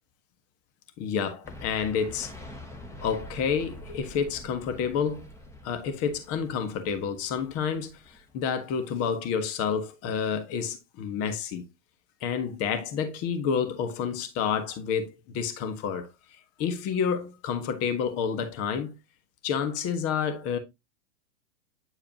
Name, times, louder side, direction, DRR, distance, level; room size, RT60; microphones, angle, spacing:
voice 1, 1.0-2.3 3.0-5.2 5.6-11.6 12.2-16.1 16.6-18.9 19.4-20.6, left 6 dB, 40° left, 1.5 m, -29 dB
sound 1, 1.4-8.4, left 1 dB, 5° left, 1.2 m, -46 dB
9.3 x 4.7 x 2.9 m
hypercardioid pair, 110°, 37 cm